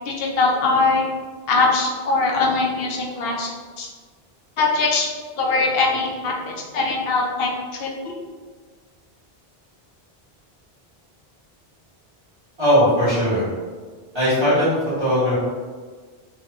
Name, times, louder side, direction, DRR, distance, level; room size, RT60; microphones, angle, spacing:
voice 1, 0.1-1.0 1.5-3.5 3.8-3.9 4.6-5.1 5.4-7.5 7.8-7.9, left 3 dB, 75° left, 0 dB, 0.8 m, -21 dB
voice 2, 12.6-13.4 14.1-15.4, equal, 25° right, -12 dB, 1.7 m, -19 dB
3.1 x 2.3 x 2.8 m, 1.5 s
omnidirectional pair, 1.0 m